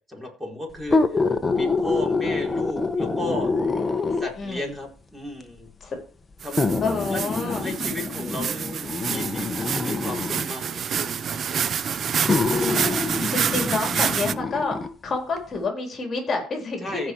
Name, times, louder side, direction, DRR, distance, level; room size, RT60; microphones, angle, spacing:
voice 1, 0.1-1.0 1.5-3.5 4.2-5.7 6.4-11.4 11.9-12.2 16.8-17.1, left 1 dB, 5° right, -1 dB, 4.8 m, -34 dB
sound 1, 0.8-4.5 5.4-5.5 6.6-10.5 11.5-11.6 12.2-14.9 15.4-15.5, left 3 dB, 20° left, 1.2 m, -26 dB
voice 2, 4.4-4.7 5.8-6.0 6.8-7.6 12.5-14.8 15.0-17.1, left 3 dB, 35° left, 2 dB, 4.1 m, -28 dB
sound 2, 6.4-14.3, right 7 dB, 45° right, 0.7 m, -28 dB
15.5 x 5.3 x 4.7 m, 0.39 s
cardioid pair, 110°, 0 cm